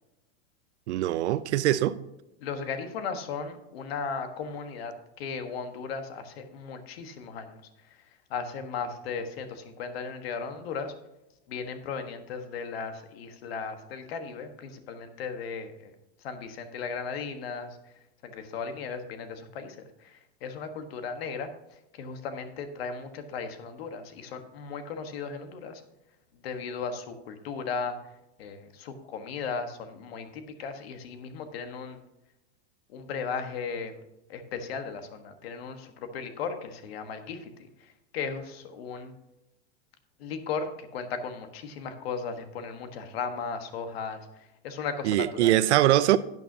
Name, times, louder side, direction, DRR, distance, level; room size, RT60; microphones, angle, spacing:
voice 1, 0.9-2.0 45.0-46.2, right 14 dB, 85° right, 0.6 m, -22 dB
voice 2, 2.4-10.9 11.5-15.9 16.2-17.8 18.2-25.8 26.4-28.0 28.4-32.0 32.9-34.0 34.3-39.1 40.2-45.6, left 5 dB, 60° left, 1.4 m, -36 dB
12.0 x 9.2 x 2.8 m
supercardioid pair, 170°, 34 cm